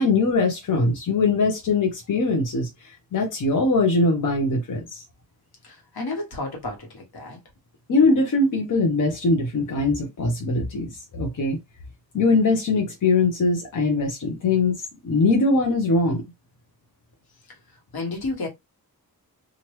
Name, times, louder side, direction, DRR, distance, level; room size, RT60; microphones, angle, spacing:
voice 1, 0.0-5.0 7.9-11.6 12.1-14.8 15.0-16.2, left 3 dB, 55° left, 0.8 m, -21 dB
voice 2, 5.6-7.4 17.9-18.5, left 2 dB, 80° left, 1.3 m, -31 dB
3.0 x 2.5 x 3.1 m
wide cardioid pair, 160°, 37 cm